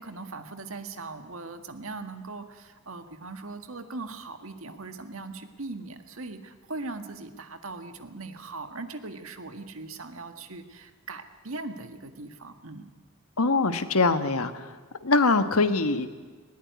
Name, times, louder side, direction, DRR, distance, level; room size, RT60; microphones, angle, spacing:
voice 1, 0.0-12.9, right 3 dB, 65° right, 7 dB, 1.8 m, -40 dB
voice 2, 13.4-14.7 15.0-16.1, left 3 dB, 85° left, 9 dB, 1.4 m, -23 dB
19.5 x 17.5 x 9.6 m, 1.4 s
head